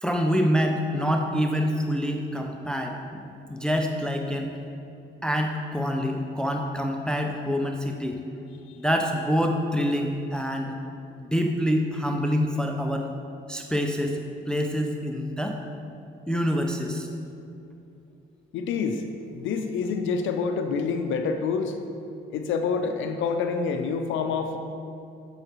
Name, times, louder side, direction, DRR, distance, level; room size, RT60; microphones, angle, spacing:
voice 1, 0.0-4.5 5.2-8.2 8.8-10.7 11.2-13.1 13.5-14.2 14.5-15.6 16.3-17.1, equal, 5° left, 3 dB, 0.4 m, -26 dB
voice 2, 18.5-19.0 19.3-21.7 22.3-24.6, left 5 dB, 75° left, 6 dB, 0.5 m, -27 dB
7.7 x 5.6 x 2.9 m, 2.6 s
cardioid pair, 90°, 20 cm